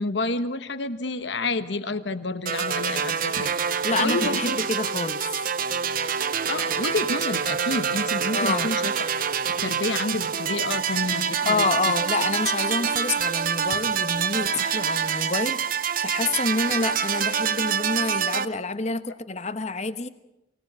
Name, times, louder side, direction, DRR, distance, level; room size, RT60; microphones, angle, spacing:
voice 1, 0.0-3.5 4.0-4.6 6.5-8.9 9.6-11.7, left 3 dB, 70° left, 11 dB, 1.3 m, -29 dB
sound 1, 2.5-18.5, right 7 dB, 50° right, 0.8 m, -26 dB
voice 2, 3.8-5.4 8.3-8.7 11.4-20.1, left 3 dB, 35° left, 12 dB, 1.1 m, -28 dB
24.0 x 18.0 x 7.7 m, 0.90 s
head